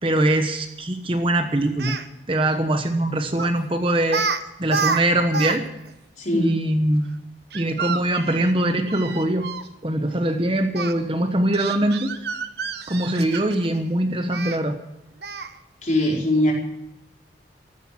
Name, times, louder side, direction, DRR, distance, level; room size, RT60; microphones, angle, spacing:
voice 1, 0.0-2.0 2.3-4.2 4.6-5.6 6.3-7.1 7.5-9.5 9.8-12.1 12.9-14.8, right 1 dB, 30° right, 7 dB, 1.1 m, -22 dB
Speech, 1.7-2.1 3.4-3.6 4.1-4.4 4.6-5.6 5.9-6.0 7.5-9.7 10.7-10.9 11.5-13.7 14.3-14.6 15.2-15.6, right 5 dB, 65° right, 1.1 m, -28 dB
voice 2, 6.2-6.5 15.8-16.5, left 1 dB, 45° left, -1 dB, 4.6 m, -21 dB
15.0 x 12.0 x 7.5 m, 0.90 s
head